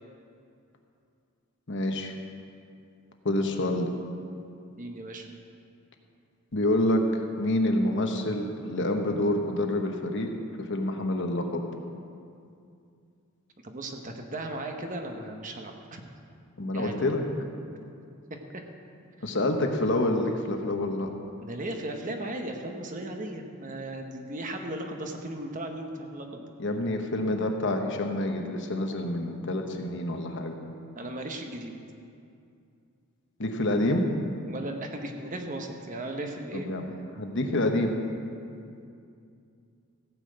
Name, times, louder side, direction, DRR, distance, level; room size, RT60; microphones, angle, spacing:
voice 1, 1.7-2.2 3.2-3.9 6.5-7.0 7.4-10.3 10.7-11.6 16.6-17.3 19.2-21.1 26.6-30.5 33.4-34.1 36.5-36.9 37.2-38.0, left 1 dB, 55° left, 4 dB, 1.1 m, -27 dB
voice 2, 4.8-5.3 13.6-16.0 16.7-17.1 18.5-18.6 21.4-26.5 31.0-31.7 34.5-36.7, right 1 dB, 35° right, 3 dB, 1.1 m, -36 dB
16.0 x 5.6 x 7.8 m, 2.5 s
head